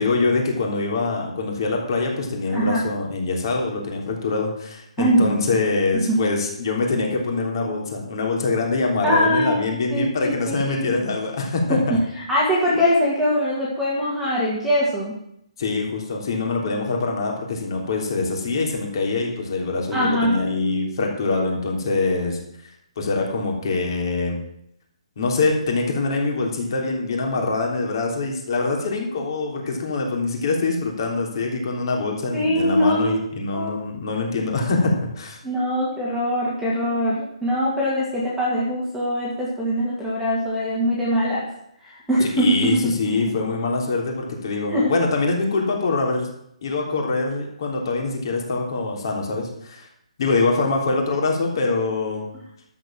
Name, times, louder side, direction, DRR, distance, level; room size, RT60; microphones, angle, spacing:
voice 1, 0.0-12.0 15.6-22.4 23.0-24.4 25.2-35.4 42.3-46.3 46.6-49.9 50.2-52.3, left 3 dB, 40° left, 1 dB, 3.2 m, -24 dB
voice 2, 2.5-2.8 5.0-5.5 6.1-6.2 9.0-11.0 11.7-12.0 12.3-15.1 19.9-20.4 32.3-33.3 33.5-33.8 35.4-41.5 42.1-42.6 44.7-44.9, equal, ahead, -7 dB, 2.0 m, -22 dB
12.0 x 7.3 x 7.5 m, 0.75 s
hypercardioid pair, 170°, 4 cm